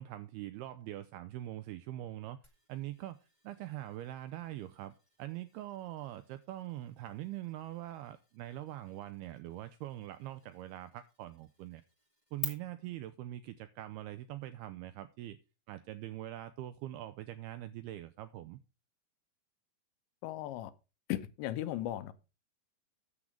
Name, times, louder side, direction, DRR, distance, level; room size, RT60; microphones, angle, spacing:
voice 1, 0.0-2.4 2.7-4.9 5.2-11.8 12.3-15.4 15.7-18.6, right 14 dB, 85° right, 2.2 m, -43 dB
sound 1, 2.4-12.4, left 3 dB, 35° left, 0.6 m, -51 dB
voice 2, 20.2-20.7 21.1-22.1, left 13 dB, 85° left, 3.0 m, -36 dB
9.9 x 7.4 x 4.9 m
omnidirectional pair, 5.1 m